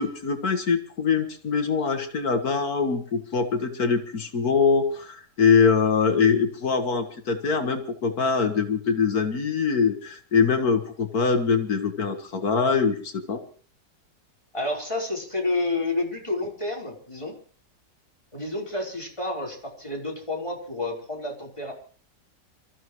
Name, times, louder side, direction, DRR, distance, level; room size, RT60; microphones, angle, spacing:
voice 1, 0.0-13.4, left 5 dB, 60° left, 6 dB, 2.0 m, -23 dB
voice 2, 14.5-17.3 18.3-21.7, left 2 dB, 15° left, -2 dB, 4.2 m, -30 dB
28.5 x 14.5 x 3.1 m, 0.42 s
omnidirectional pair, 1.8 m